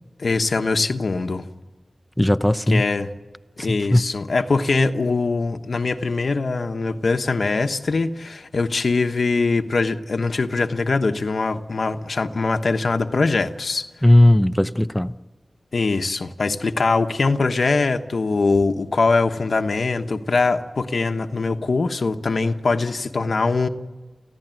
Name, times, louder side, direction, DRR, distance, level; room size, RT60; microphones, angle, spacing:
voice 1, 0.2-1.4 2.7-3.1 3.6-13.8 15.7-23.7, left 3 dB, 70° left, 1.2 m, -22 dB
voice 2, 2.2-2.8 3.6-4.1 14.0-15.1, left 1 dB, 10° left, 0.7 m, -17 dB
29.5 x 15.5 x 9.2 m
wide cardioid pair, 65°, 0 cm